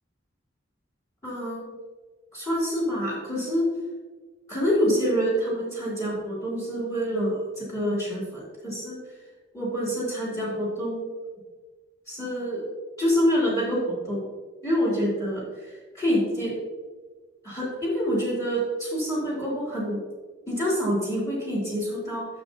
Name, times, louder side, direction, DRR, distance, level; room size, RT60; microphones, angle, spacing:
voice 1, 1.2-1.6 2.3-3.7 4.5-9.0 9.5-11.1 12.1-12.6 13.0-14.3 14.6-16.5 17.4-20.0 20.5-22.3, equal, 20° left, -7 dB, 2.7 m, -26 dB
11.5 x 6.8 x 2.7 m, 1.3 s
head